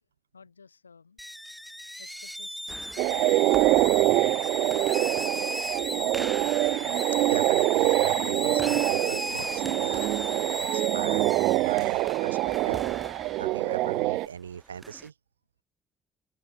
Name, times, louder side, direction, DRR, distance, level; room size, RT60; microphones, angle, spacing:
voice 1, 0.3-1.3 2.0-4.2, left 5 dB, 90° left, 2.2 m, -55 dB
sound 1, 1.2-13.4, equal, 5° left, 0.6 m, -36 dB
sound 2, 2.7-15.1, right 3 dB, 25° right, 2.2 m, -45 dB
sound 3, 3.0-14.3, right 19 dB, 70° right, 0.5 m, -25 dB
voice 2, 7.2-10.1 10.6-11.4 11.6-12.9 13.4-15.1, right 7 dB, 85° right, 1.8 m, -40 dB
open air
figure-of-eight pair, 45°, 0 cm